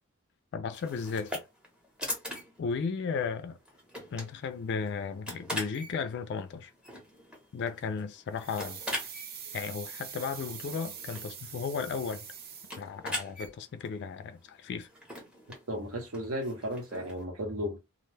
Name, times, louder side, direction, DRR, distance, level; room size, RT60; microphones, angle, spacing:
voice 1, 0.5-1.4 2.6-3.6 4.1-6.7 7.5-8.8 9.5-12.2 12.7-14.9, left 5 dB, 50° left, 0.3 m, -35 dB
sound 1, 0.7-17.2, equal, 5° right, 0.7 m, -43 dB
sound 2, 8.4-13.2 13.4-13.5, right 7 dB, 45° right, 0.5 m, -44 dB
voice 2, 15.7-17.8, equal, 65° right, 0.9 m, -34 dB
2.4 x 2.1 x 3.2 m
head